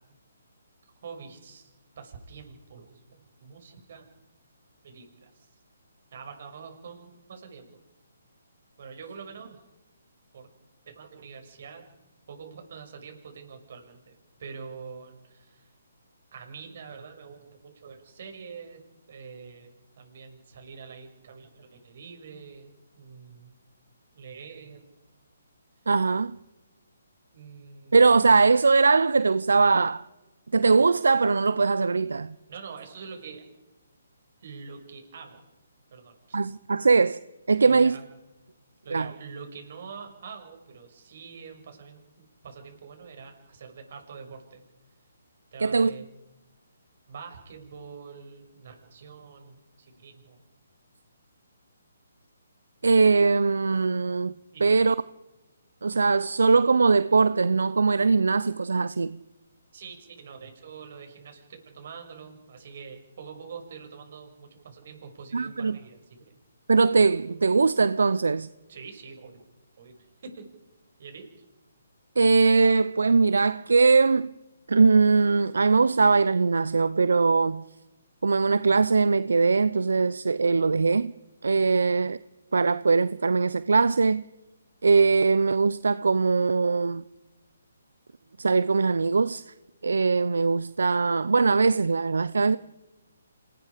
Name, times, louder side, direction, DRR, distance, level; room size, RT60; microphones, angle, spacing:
voice 1, 1.0-1.7 2.0-3.0 3.4-4.1 4.8-5.4 6.1-7.7 8.8-9.6 10.3-10.5 10.8-11.8 12.3-14.1 14.4-15.7 16.3-18.8 19.1-19.7 20.0-22.7 23.0-23.5 24.1-24.8 27.3-28.0 32.5-33.4 34.4-35.4 35.9-36.4 37.6-38.0 38.8-44.6 45.5-46.1 47.1-50.4 54.5-54.8 59.7-66.0 68.7-69.4 69.8-69.9 70.2-70.5 71.0-71.3, right 5 dB, 55° right, 6.7 m, -45 dB
voice 2, 25.9-26.4 27.9-30.1 30.5-32.3 36.3-37.2 37.5-38.0 38.9-39.1 45.6-45.9 52.8-55.0 55.8-59.2 65.3-65.8 66.7-68.5 72.2-74.3 74.7-77.6 78.2-81.1 81.4-82.2 82.5-84.3 84.8-87.0 88.4-89.5 89.8-92.6, right 4 dB, 75° right, 0.6 m, -21 dB
27.5 x 19.5 x 5.1 m
figure-of-eight pair, 145°, 0 cm